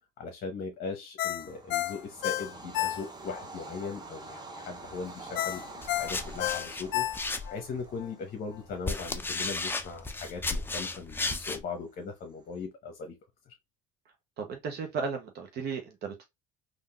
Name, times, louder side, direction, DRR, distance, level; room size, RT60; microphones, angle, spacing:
voice 1, 0.2-13.1 13.5-13.6, left 4 dB, 50° left, 0.9 m, -39 dB
Ringtone, 1.2-3.4 3.8-3.9 5.4-7.6 8.0-8.1, left 14 dB, 65° left, 0.4 m, -31 dB
Bird vocalization bird call bird song / Train, 1.4-12.6, right 3 dB, 20° right, 0.8 m, -48 dB
sound 1, 5.8-7.8 8.5-11.6, left 3 dB, 10° left, 0.4 m, -34 dB
voice 2, 14.4-16.2, right 5 dB, 55° right, 0.9 m, -35 dB
3.7 x 2.6 x 2.3 m
cardioid pair, 105°, 20 cm